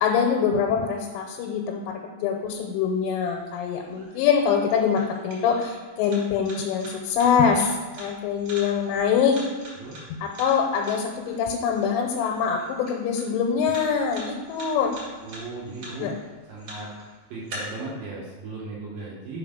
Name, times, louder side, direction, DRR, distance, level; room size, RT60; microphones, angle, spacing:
voice 1, 0.0-9.4 10.1-14.9 16.0-16.1, left 6 dB, 90° left, 0 dB, 3.1 m, -24 dB
sound 1, 2.5-17.5, right 1 dB, 45° right, 2.4 m, -45 dB
voice 2, 15.2-16.1 16.5-16.9 17.3-19.4, right 3 dB, 80° right, -5 dB, 2.1 m, -36 dB
6.5 x 3.8 x 5.0 m, 1.3 s
omnidirectional pair, 5.5 m